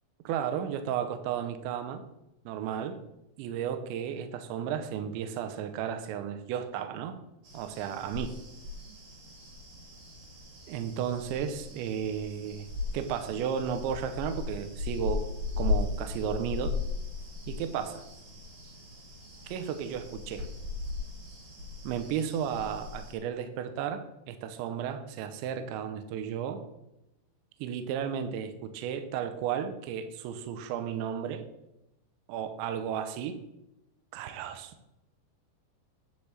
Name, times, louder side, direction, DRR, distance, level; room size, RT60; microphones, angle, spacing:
voice 1, 0.3-2.0 2.5-3.0 3.4-7.2 7.5-8.3 10.7-12.7 12.9-15.3 15.6-16.8 17.5-18.0 19.4-20.4 21.8-26.6 27.6-31.5 32.3-33.4 34.1-34.7, right 8 dB, 80° right, 9 dB, 3.0 m, -33 dB
sound 1, 7.4-23.1, left 4 dB, 45° right, 3.2 m, -37 dB
10.5 x 5.4 x 7.3 m, 0.88 s
omnidirectional pair, 5.4 m